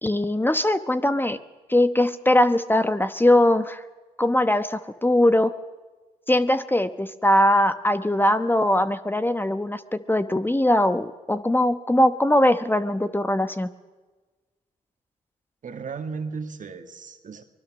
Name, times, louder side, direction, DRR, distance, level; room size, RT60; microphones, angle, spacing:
voice 1, 0.0-1.4 1.7-3.8 4.2-5.5 6.3-13.7, left 1 dB, 15° left, 11 dB, 1.1 m, -21 dB
voice 2, 15.6-17.4, right 5 dB, 55° right, 6 dB, 2.1 m, -35 dB
24.0 x 20.0 x 6.4 m, 1.3 s
supercardioid pair, 50°, 16 cm